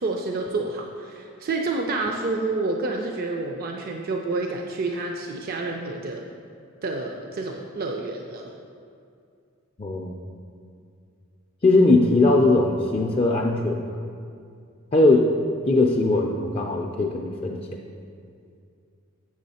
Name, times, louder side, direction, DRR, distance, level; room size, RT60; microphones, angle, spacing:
voice 1, 0.0-6.3 6.8-8.5, right 3 dB, 45° right, 2 dB, 0.4 m, -29 dB
voice 2, 9.8-10.1 11.6-14.0 14.9-15.3 15.6-17.7, left 2 dB, 30° left, 0 dB, 0.4 m, -20 dB
7.2 x 6.3 x 4.2 m, 2.4 s
head